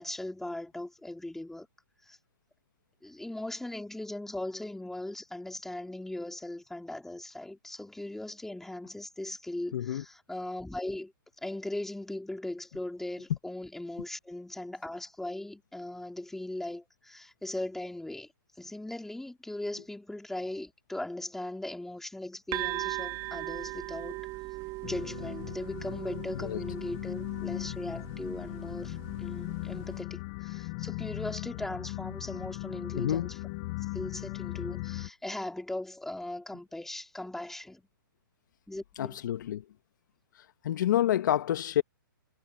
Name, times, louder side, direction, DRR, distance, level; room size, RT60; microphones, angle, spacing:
voice 1, 0.0-1.7 2.0-2.2 3.0-11.1 11.4-18.3 18.6-24.2 24.8-33.4 33.9-37.9 38.7-39.2, left 1 dB, 5° left, 3.8 m, -39 dB
voice 2, 9.7-10.0 26.4-26.6 32.9-33.3 39.0-39.6 40.6-41.8, left 11 dB, 60° left, 1.6 m, -28 dB
sound 1, 22.5-30.0, right 19 dB, 30° right, 2.4 m, -39 dB
sound 2, 24.8-35.1, left 24 dB, 40° left, 0.9 m, -38 dB
hypercardioid pair, 135°, 11 cm